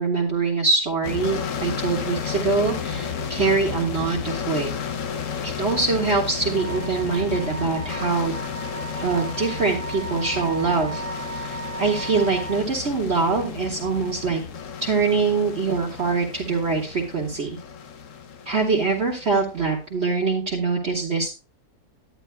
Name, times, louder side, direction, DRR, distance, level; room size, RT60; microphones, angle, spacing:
voice 1, 0.0-4.7 5.4-8.4 8.9-11.0 11.4-14.4 14.8-17.6 18.5-21.4, right 4 dB, 45° right, -3 dB, 1.7 m, -24 dB
sound 1, 1.0-19.7, left 6 dB, 55° left, 1.1 m, -32 dB
Wind instrument woodwind instrument, 6.5-12.6, right 4 dB, 80° left, 4.6 m, -36 dB
11.0 x 10.5 x 2.2 m, 0.30 s
omnidirectional pair, 1.7 m